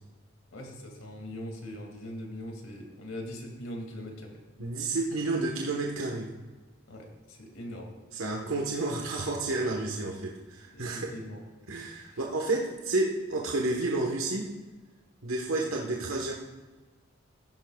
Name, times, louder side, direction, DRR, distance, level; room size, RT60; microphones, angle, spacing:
voice 1, 0.5-4.3 6.9-7.9 10.7-11.4, left 1 dB, 75° left, 1 dB, 2.3 m, -41 dB
voice 2, 4.6-6.3 8.1-11.1 11.7-14.5 15.2-16.3, right 2 dB, 90° right, -1 dB, 1.3 m, -30 dB
15.5 x 11.0 x 2.4 m, 1.3 s
head